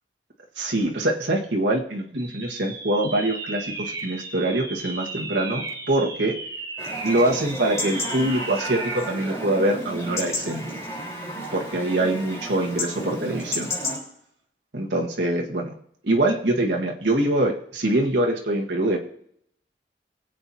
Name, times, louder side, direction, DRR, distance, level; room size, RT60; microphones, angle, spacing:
voice 1, 0.6-6.3 7.0-10.7 11.5-13.7 14.7-15.7 16.0-19.0, right 1 dB, 85° right, 0 dB, 1.7 m, -24 dB
sound 1, 2.2-9.1, right 3 dB, 20° right, 0.9 m, -35 dB
Chatter / Livestock farm animals working animals / Chirp tweet, 6.8-14.0, left 1 dB, 15° left, 4.1 m, -32 dB
22.5 x 8.0 x 2.8 m, 0.71 s
head